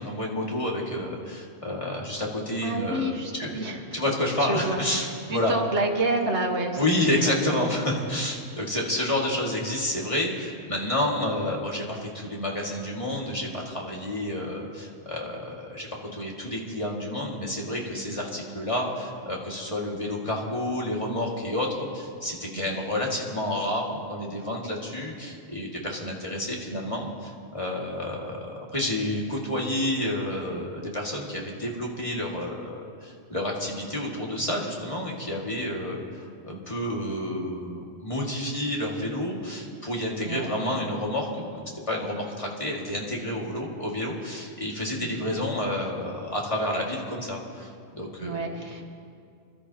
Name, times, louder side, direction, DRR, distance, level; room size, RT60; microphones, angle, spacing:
voice 1, 0.0-3.0 3.4-3.6 3.9-5.5 6.8-21.7 21.9-48.4, left 1 dB, 25° left, -2 dB, 2.1 m, -29 dB
voice 2, 2.6-3.8 4.4-7.3 8.0-8.1 22.6-22.8 40.2-40.6 45.0-45.2 48.2-48.8, right 2 dB, 60° right, 1 dB, 1.8 m, -29 dB
26.0 x 12.5 x 2.9 m, 2.3 s
omnidirectional pair, 1.3 m